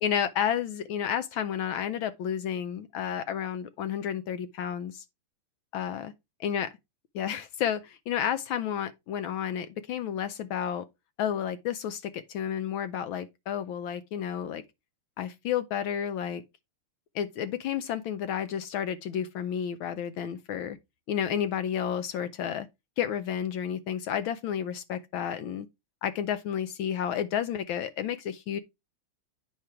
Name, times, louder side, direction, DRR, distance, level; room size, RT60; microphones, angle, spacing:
voice 1, 0.0-5.0 5.7-6.1 6.4-6.7 7.1-10.9 11.2-14.6 15.2-16.4 17.1-20.8 21.1-22.7 23.0-25.7 26.0-28.6, left 9 dB, 75° left, 1.4 m, -31 dB
8.8 x 4.9 x 4.4 m
omnidirectional pair, 2.4 m